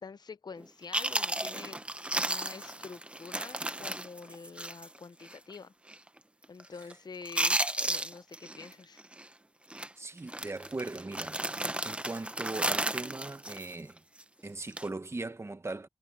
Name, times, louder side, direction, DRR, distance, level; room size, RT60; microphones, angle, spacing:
voice 1, 0.0-1.8 2.1-5.7 6.5-9.0, left 5 dB, 70° left, 0.6 m, -47 dB
Chewing mastication, 0.6-0.7 0.9-5.0 5.2-5.4 5.9-6.2 6.4-6.9 7.2-8.7 9.0-9.3 9.7-9.9 10.3-14.2 14.6-14.9, right 1 dB, 15° right, 0.8 m, -33 dB
voice 2, 10.0-14.0 14.4-15.9, right 2 dB, 35° right, 1.3 m, -39 dB
wide cardioid pair, 95°, 7 cm